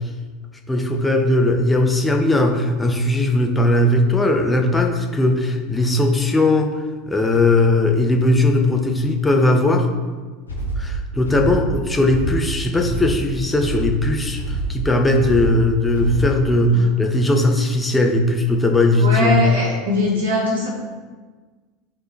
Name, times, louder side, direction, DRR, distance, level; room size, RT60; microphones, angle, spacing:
voice 1, 0.7-6.7 7.1-9.9 10.8-19.4, left 2 dB, 10° left, 2 dB, 1.0 m, -18 dB
sound 1, 10.5-16.5, right 2 dB, 90° left, 1.3 m, -26 dB
voice 2, 19.0-20.7, left 1 dB, 70° right, -6 dB, 1.9 m, -21 dB
11.5 x 4.5 x 3.3 m, 1.4 s
figure-of-eight pair, 80°, 0 cm